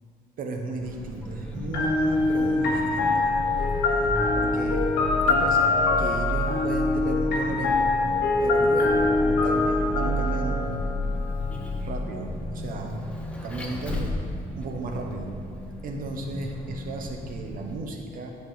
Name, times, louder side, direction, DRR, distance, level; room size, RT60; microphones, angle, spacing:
voice 1, 0.4-3.3 4.3-4.9 5.3-7.9 8.4-10.6 11.8-13.0 13.4-14.2 14.6-15.4 15.8-18.3, right 2 dB, 55° right, 3 dB, 1.0 m, -35 dB
Vehicle, 0.8-17.7, equal, 5° left, 0.9 m, -32 dB
sound 1, 1.7-11.5, left 3 dB, 80° left, 1.3 m, -24 dB
9.6 x 5.2 x 3.9 m, 2.2 s
cardioid pair, 110°, 17 cm